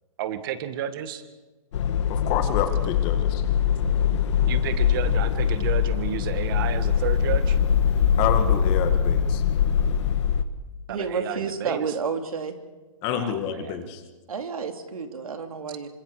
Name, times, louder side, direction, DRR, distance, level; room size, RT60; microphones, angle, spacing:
voice 1, 0.2-1.2 4.5-7.6 10.9-11.9 13.1-13.8, right 10 dB, 40° right, 11 dB, 1.8 m, -32 dB
sound 1, 1.7-10.4, left 8 dB, 55° left, 1.6 m, -22 dB
voice 2, 2.1-3.4 8.2-9.4 13.0-14.0, left 9 dB, 25° left, 7 dB, 2.1 m, -28 dB
voice 3, 10.9-12.5 14.3-15.9, right 5 dB, 80° right, 6 dB, 3.2 m, -30 dB
27.5 x 25.5 x 5.0 m, 1.2 s
hypercardioid pair, 150°, 18 cm